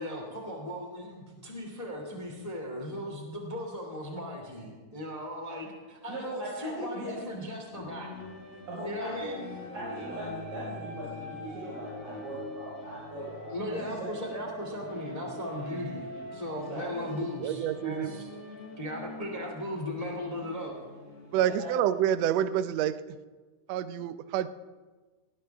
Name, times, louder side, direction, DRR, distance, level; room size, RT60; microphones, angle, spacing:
voice 1, 0.0-8.1 8.8-9.4 13.5-18.3 18.8-20.7, left 1 dB, 15° left, 0 dB, 2.0 m, -37 dB
voice 2, 6.1-7.1 8.7-9.3 9.7-14.3 16.5-17.2 21.4-21.7, right 1 dB, 55° right, -8 dB, 6.5 m, -39 dB
sound 1, 7.7-21.6, left 3 dB, 75° left, 5.3 m, -46 dB
sound 2, 7.8-19.7, right 1 dB, 10° right, 3.5 m, -47 dB
voice 3, 17.1-18.1 21.3-23.2 23.7-24.5, right 10 dB, 85° right, 13 dB, 1.5 m, -28 dB
19.0 x 18.5 x 3.5 m, 1.3 s
omnidirectional pair, 3.7 m